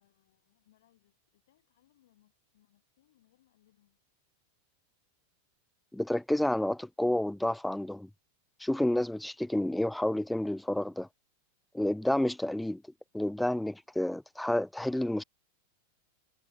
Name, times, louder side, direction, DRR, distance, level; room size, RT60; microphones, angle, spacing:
voice 1, 0.0-4.0, left 14 dB, 55° left, 7.2 m, -70 dB
voice 2, 5.9-8.1 8.6-11.1 11.7-12.8 13.1-15.2, left 1 dB, 5° left, 0.5 m, -30 dB
figure-of-eight pair, 90°, 0 cm